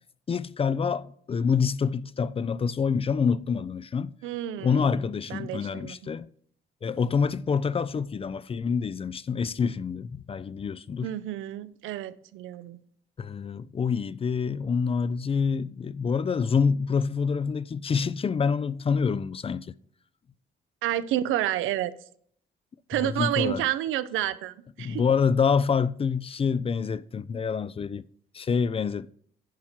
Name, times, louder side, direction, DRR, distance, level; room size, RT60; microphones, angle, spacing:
voice 1, 0.3-4.1 4.6-6.3 6.8-11.1 13.2-19.7 23.0-23.6 24.8-28.0 28.3-29.1, left 6 dB, 30° left, 0.4 m, -27 dB
voice 2, 4.2-5.0 5.3-6.1 11.0-12.8 20.8-21.9 22.9-25.0, right 13 dB, 85° right, 0.6 m, -30 dB
10.5 x 4.5 x 5.8 m
cardioid pair, 90°, 20 cm